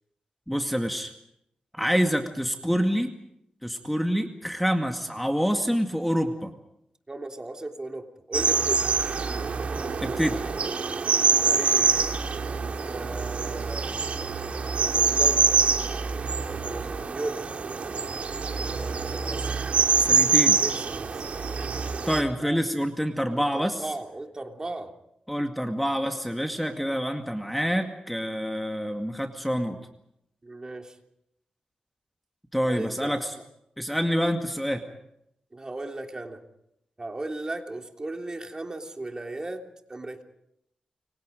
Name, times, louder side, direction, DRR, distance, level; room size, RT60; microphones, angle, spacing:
voice 1, 0.5-1.1 1.7-3.1 3.6-6.5 10.0-10.4 20.0-20.6 22.1-23.8 25.3-29.8 32.5-33.4 33.8-34.8, equal, ahead, 5 dB, 2.1 m, -27 dB
voice 2, 7.1-8.9 11.4-12.2 12.8-13.9 14.7-15.7 16.4-17.6 18.5-19.5 20.6-21.2 22.4-22.6 23.3-24.9 30.4-31.0 32.6-33.2 35.5-36.4 37.0-39.6 39.9-40.2, right 2 dB, 30° right, 4 dB, 3.2 m, -36 dB
sound 1, 8.3-22.2, right 5 dB, 60° right, 2.4 m, -25 dB
28.5 x 24.0 x 5.3 m, 0.77 s
cardioid pair, 75°, 3 cm